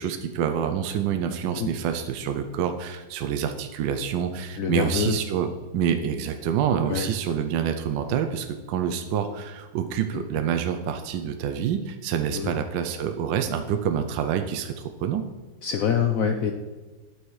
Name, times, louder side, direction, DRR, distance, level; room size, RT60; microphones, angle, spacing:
voice 1, 0.0-15.3, right 8 dB, 75° right, 7 dB, 1.3 m, -27 dB
voice 2, 4.6-5.2 6.9-7.1 10.1-10.2 12.3-12.7 15.6-16.5, left 7 dB, 70° left, 6 dB, 0.8 m, -25 dB
11.5 x 6.3 x 4.7 m, 1.3 s
omnidirectional pair, 2.1 m